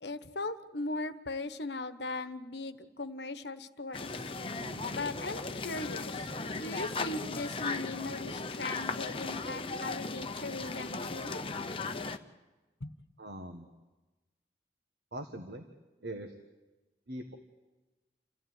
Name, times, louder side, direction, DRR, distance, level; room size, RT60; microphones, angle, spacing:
voice 1, 0.0-4.3 4.9-11.4 12.8-12.9, left 3 dB, 70° left, 11 dB, 1.2 m, -39 dB
sound 1, 3.9-12.2, left 3 dB, 30° left, 0.9 m, -37 dB
Bass guitar, 4.6-8.1, equal, 85° right, 4.0 m, -53 dB
voice 2, 13.2-13.7 15.1-15.7 16.0-16.3 17.1-17.4, right 1 dB, 70° right, 5 dB, 1.6 m, -41 dB
29.0 x 14.5 x 9.6 m, 1.2 s
head